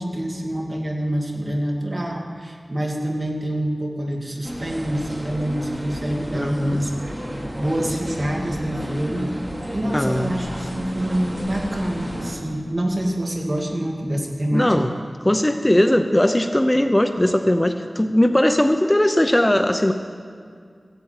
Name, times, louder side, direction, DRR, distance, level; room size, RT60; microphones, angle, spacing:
voice 1, 0.0-7.1 7.5-9.3 9.7-14.8, right 1 dB, 40° right, 0 dB, 2.2 m, -26 dB
sound 1, 4.4-12.3, equal, 20° right, 2.8 m, -32 dB
voice 2, 6.3-6.8 9.9-10.3 14.5-14.9 15.2-19.9, left 1 dB, 20° left, 7 dB, 0.7 m, -19 dB
15.5 x 8.2 x 8.9 m, 2.2 s
wide cardioid pair, 70°, 0 cm